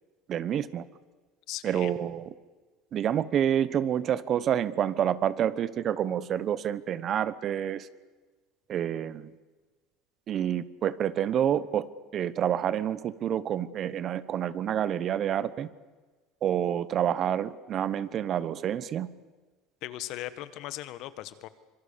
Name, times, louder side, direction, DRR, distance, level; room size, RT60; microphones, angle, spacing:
voice 1, 0.3-0.8 1.6-2.3 2.9-7.9 8.7-9.3 10.3-11.9 12.1-15.7 16.4-19.1, right 10 dB, 45° right, 16 dB, 1.0 m, -28 dB
voice 2, 1.5-1.9 19.8-21.5, left 14 dB, 65° left, 14 dB, 1.5 m, -38 dB
25.5 x 23.0 x 6.8 m, 1.3 s
supercardioid pair, 120°, 0 cm